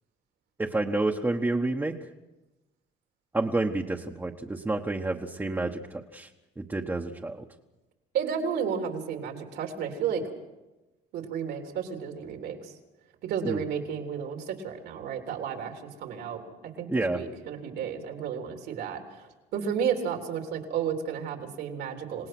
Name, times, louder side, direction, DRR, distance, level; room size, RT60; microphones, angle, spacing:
voice 1, 0.6-1.9 3.3-6.3 6.6-7.4 13.4-13.6 16.9-17.2, right 2 dB, 10° right, 0 dB, 1.2 m, -29 dB
voice 2, 8.1-10.2 11.1-12.8 13.2-16.4 16.8-22.3, right 7 dB, 80° right, 4 dB, 3.4 m, -32 dB
27.5 x 18.5 x 6.1 m, 1.0 s
cardioid pair, 110°, 17 cm